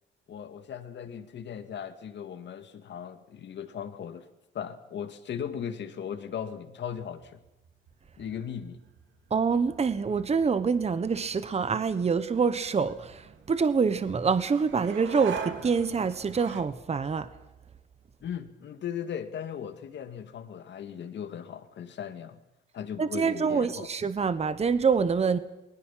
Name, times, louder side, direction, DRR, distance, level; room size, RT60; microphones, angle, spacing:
voice 1, 0.3-4.3 4.5-7.4 8.2-8.8 18.2-22.4 22.7-23.9, left 8 dB, 65° left, 2.2 m, -38 dB
sound 1, 7.0-16.6, right 7 dB, 70° right, 2.5 m, -44 dB
voice 2, 9.3-17.3 23.0-25.4, right 5 dB, 30° right, 1.2 m, -26 dB
28.5 x 21.0 x 5.9 m
cardioid pair, 90°, 20 cm